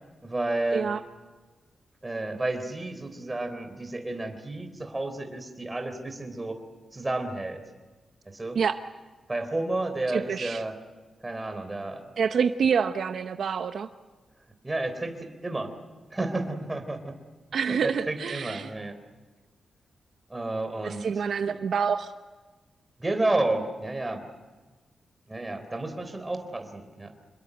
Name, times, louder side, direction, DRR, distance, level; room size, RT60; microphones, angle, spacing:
voice 1, 0.2-0.9 2.0-6.6 6.9-7.6 8.3-8.6 9.3-10.8 11.2-12.0 14.6-15.7 16.1-17.2 17.6-19.0 20.3-21.0 23.0-24.2 25.3-27.1, right 2 dB, 15° right, 7 dB, 3.7 m, -31 dB
voice 2, 10.1-10.6 12.2-13.9 17.5-18.7 20.8-22.1, right 6 dB, 65° right, 8 dB, 0.8 m, -27 dB
27.5 x 21.5 x 8.0 m, 1.3 s
wide cardioid pair, 135°, 0 cm